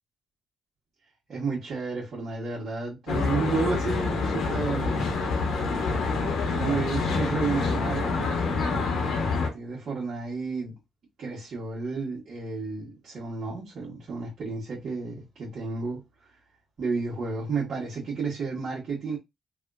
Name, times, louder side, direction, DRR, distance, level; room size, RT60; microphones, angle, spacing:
voice 1, 1.3-5.1 5.4-5.5 6.4-10.7 11.2-16.0 16.8-19.2, right 4 dB, 55° right, 1.3 m, -32 dB
Traffic noise roadway noise, 3.1-9.5, left 4 dB, 75° left, 1.1 m, -27 dB
3.4 x 2.4 x 2.3 m
cardioid pair, 90°, 0 cm